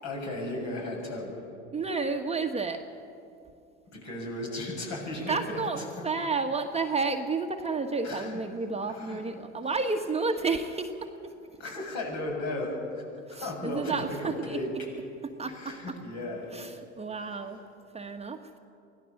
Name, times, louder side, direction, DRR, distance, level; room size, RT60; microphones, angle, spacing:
voice 1, 0.0-1.4 3.9-6.0 8.0-8.4 8.9-9.2 11.6-13.0 13.3-14.7 15.5-16.5 17.2-17.4, left 1 dB, 55° left, -1 dB, 7.4 m, -35 dB
voice 2, 1.7-2.8 5.3-11.3 13.3-14.6 15.2-15.9 16.5-17.6 17.9-18.4, right 4 dB, 20° right, 4 dB, 1.4 m, -31 dB
24.5 x 17.0 x 6.6 m, 2.5 s
hypercardioid pair, 75°, 34 cm